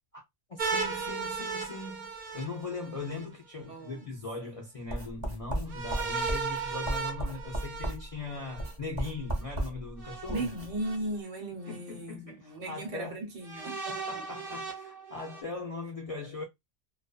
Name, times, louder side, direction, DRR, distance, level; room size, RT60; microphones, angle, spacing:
voice 1, 0.5-10.5 11.7-13.2 13.9-16.4, left 3 dB, 50° left, 0.4 m, -40 dB
sound 1, 0.6-3.2 5.7-8.7 10.0-10.9 11.7-11.8 13.4-15.4, right 5 dB, 55° right, 0.8 m, -36 dB
voice 2, 3.7-4.1 10.3-13.8, right 1 dB, 85° right, 1.3 m, -36 dB
sound 2, 4.9-10.7, right 1 dB, 25° right, 0.7 m, -36 dB
2.5 x 2.2 x 2.3 m
omnidirectional pair, 1.3 m